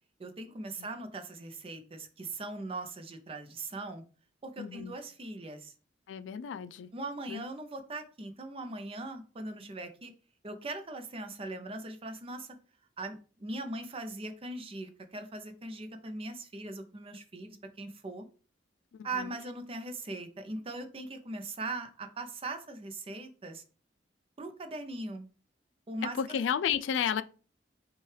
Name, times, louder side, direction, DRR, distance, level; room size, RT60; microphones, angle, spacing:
voice 1, 0.2-4.0 4.4-5.7 6.9-10.1 10.4-12.5 13.0-18.3 19.0-23.6 24.4-25.3 25.9-26.2, right 2 dB, 30° right, 0.6 m, -40 dB
voice 2, 4.6-5.0 6.1-6.9 7.3-7.4 19.1-19.3 26.0-27.2, left 8 dB, 85° left, 0.3 m, -32 dB
5.5 x 2.3 x 3.3 m
head